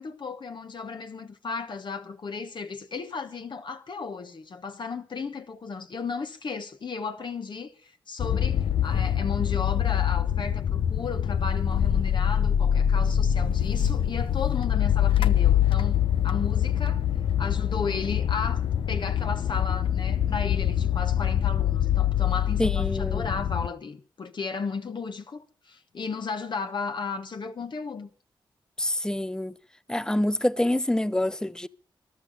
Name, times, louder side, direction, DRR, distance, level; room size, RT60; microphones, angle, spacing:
voice 1, 0.0-17.0 17.4-28.1, left 4 dB, 55° left, 1.2 m, -34 dB
sound 1, 8.2-23.7, left 10 dB, 75° left, 0.7 m, -24 dB
voice 2, 22.6-23.3 28.8-29.5 29.9-31.7, left 1 dB, 10° left, 0.7 m, -26 dB
14.5 x 11.5 x 6.7 m
supercardioid pair, 45°, 9 cm